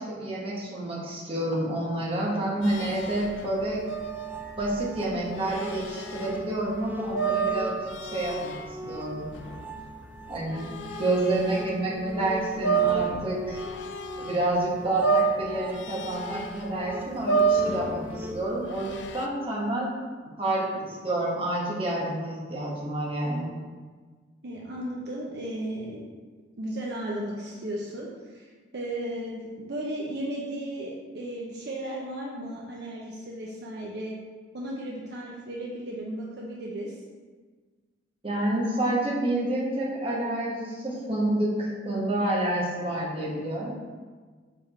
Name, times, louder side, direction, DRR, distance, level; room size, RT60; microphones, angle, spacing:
voice 1, 0.0-3.9 4.6-9.3 10.3-13.6 14.2-19.9 20.4-23.6 38.2-43.7, right 1 dB, 30° right, -5 dB, 1.4 m, -29 dB
sound 1, 2.6-11.7 12.1-14.6 14.8-19.3, right 5 dB, 75° left, 0.4 m, -30 dB
sound 2, 4.0-18.3, equal, 10° right, 0.5 m, -40 dB
voice 2, 24.4-26.0 26.6-34.2 34.5-37.0, right 1 dB, 60° right, -3 dB, 0.8 m, -35 dB
6.9 x 3.6 x 4.3 m, 1.5 s
head